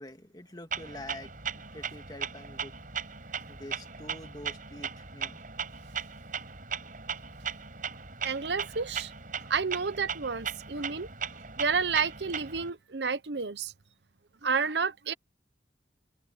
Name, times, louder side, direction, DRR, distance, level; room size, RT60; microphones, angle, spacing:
voice 1, 0.0-2.7 3.5-5.4, left 1 dB, 25° left, 2.4 m, -46 dB
Clock, 0.7-12.7, right 6 dB, 50° right, 6.3 m, -38 dB
voice 2, 8.2-9.1 9.5-11.1 11.6-13.7 14.4-15.1, right 5 dB, 75° right, 0.9 m, -30 dB
head